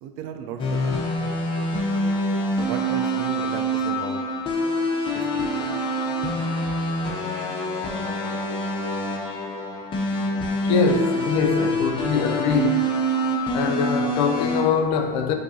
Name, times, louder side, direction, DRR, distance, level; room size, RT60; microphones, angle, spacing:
voice 1, 0.0-1.0 2.6-4.2 5.1-5.6, right 7 dB, 65° right, 0.4 m, -36 dB
sound 1, 0.6-14.6, equal, 25° left, 0.6 m, -25 dB
voice 2, 10.6-13.0 13.5-15.3, left 5 dB, 85° left, 0.5 m, -23 dB
5.3 x 2.6 x 2.7 m
cardioid pair, 150°, 21 cm